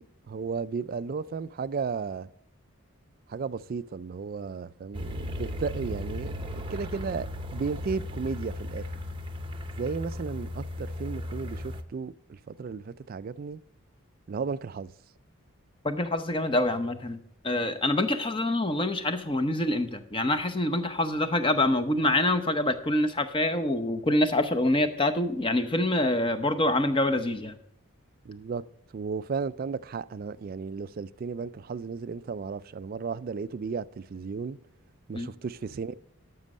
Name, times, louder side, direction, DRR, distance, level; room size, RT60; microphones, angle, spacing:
voice 1, 0.0-2.3 3.3-8.9 9.8-13.6 14.3-14.9 28.2-28.6 28.9-34.6 35.1-35.9, right 5 dB, 40° right, 0.3 m, -34 dB
sound 1, 4.9-11.8, left 1 dB, 25° right, 0.7 m, -36 dB
voice 2, 15.8-17.2 17.4-27.5 35.1-35.3, left 1 dB, 25° left, 0.7 m, -26 dB
12.5 x 6.2 x 5.4 m
head